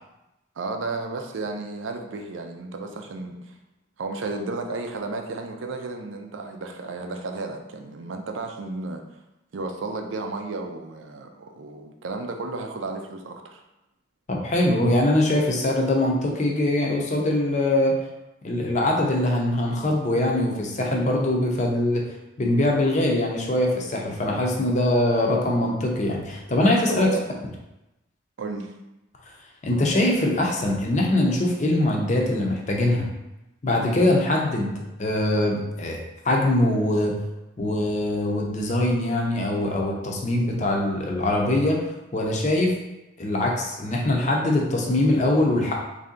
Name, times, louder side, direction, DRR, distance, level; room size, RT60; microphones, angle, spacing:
voice 1, 0.6-3.5 4.0-9.0 9.5-13.6 26.9-27.2 28.4-28.7, right 3 dB, 80° right, 4 dB, 0.5 m, -33 dB
voice 2, 14.3-18.1 18.4-22.0 22.4-27.1 29.6-33.1 33.6-34.7 35.0-36.0 36.2-37.1 37.6-41.8 42.1-42.7 43.2-45.7, left 1 dB, 40° left, 0 dB, 0.6 m, -22 dB
3.3 x 2.7 x 3.7 m, 0.95 s
head